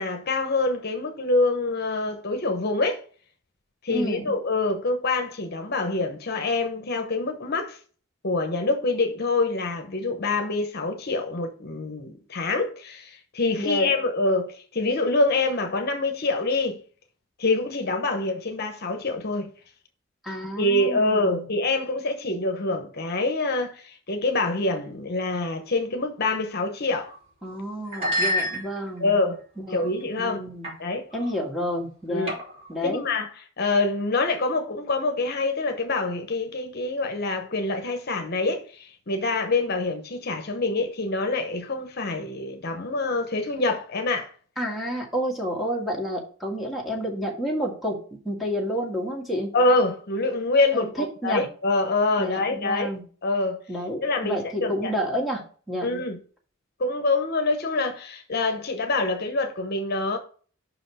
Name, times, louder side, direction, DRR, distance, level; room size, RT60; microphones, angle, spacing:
voice 1, 0.0-3.0 3.8-7.8 8.2-16.8 17.4-19.5 20.6-27.1 29.0-29.4 29.7-30.4 30.8-31.1 32.1-32.3 32.8-44.3 49.5-52.9 53.2-53.6 54.0-54.9 55.8-56.2 56.8-60.2, left 2 dB, 50° left, 0.9 m, -25 dB
voice 2, 3.9-4.3 13.6-13.9 20.2-21.5 27.4-29.1 29.6-29.9 30.2-30.7 31.1-32.3 32.7-33.0 44.6-49.5 50.7-51.4 52.2-53.0 53.7-55.9, equal, ahead, 1.8 m, -30 dB
sound 1, 27.0-27.2 27.9-29.1 29.7-30.0 30.6-30.8 31.1-31.3 32.3-32.7, equal, 30° right, 3.2 m, -29 dB
5.9 x 5.1 x 4.9 m
head